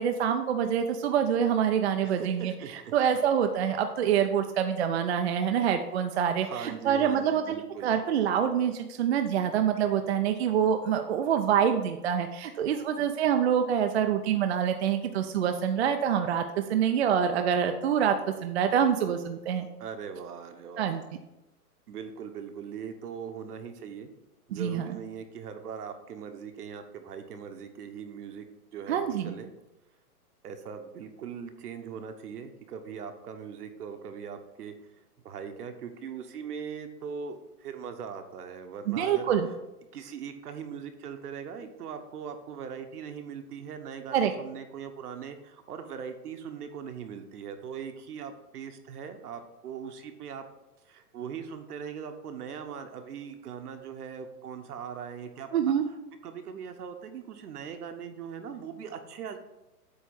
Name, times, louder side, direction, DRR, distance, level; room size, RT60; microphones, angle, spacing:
voice 1, 0.0-2.5 2.9-16.4 16.7-18.1 18.4-19.7 20.8-21.0 24.5-24.9 28.9-29.3 38.9-39.5 44.1-44.3 55.5-55.8, right 8 dB, 45° right, 6 dB, 0.5 m, -26 dB
voice 2, 2.0-2.9 3.8-3.9 6.4-8.0 19.8-21.0 21.9-24.1 24.5-28.5 28.7-29.5 30.4-34.7 35.2-39.3 39.9-50.4 50.8-55.5 56.2-59.4, right 7 dB, 70° right, 7 dB, 1.2 m, -40 dB
8.1 x 3.1 x 6.3 m, 0.96 s
hypercardioid pair, 155°, 47 cm